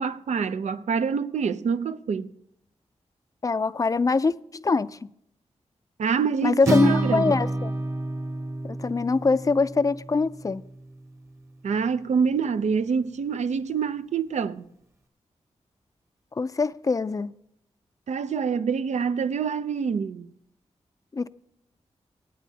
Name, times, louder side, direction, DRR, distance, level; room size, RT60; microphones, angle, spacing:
voice 1, 0.0-2.3 6.0-7.4 11.6-14.6 18.1-20.3, right 6 dB, 80° right, 0.5 m, -26 dB
voice 2, 3.4-4.3 4.6-4.9 6.4-7.7 8.7-10.6 16.4-17.3 21.1-21.3, left 4 dB, 30° left, 0.4 m, -23 dB
Acoustic guitar, 6.6-10.9, right 1 dB, 25° right, 1.0 m, -29 dB
24.0 x 9.1 x 2.8 m
wide cardioid pair, 75°, 12 cm